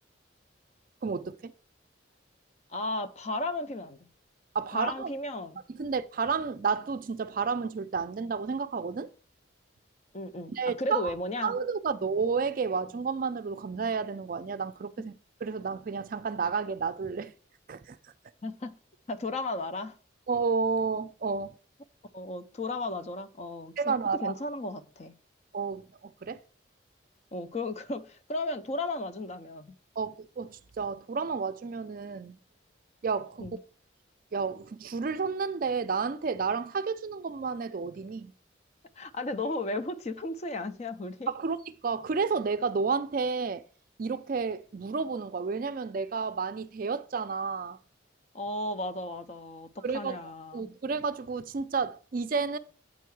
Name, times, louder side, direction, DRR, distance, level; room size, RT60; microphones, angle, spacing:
voice 1, 1.0-1.5 4.5-5.1 5.7-9.1 10.5-11.1 11.4-15.1 15.4-17.3 17.7-18.0 20.3-21.6 23.8-24.3 25.5-26.4 30.0-32.4 33.0-33.5 34.3-38.3 41.3-43.6 44.0-47.8 49.8-52.6, right 5 dB, 45° right, 0.4 m, -31 dB
voice 2, 2.7-4.1 4.7-5.6 10.1-11.6 18.4-18.7 19.1-19.9 22.1-23.9 24.2-25.2 27.3-29.7 33.4-33.6 39.0-41.3 48.3-50.8, left 2 dB, 35° left, 0.5 m, -35 dB
8.3 x 4.6 x 4.6 m
head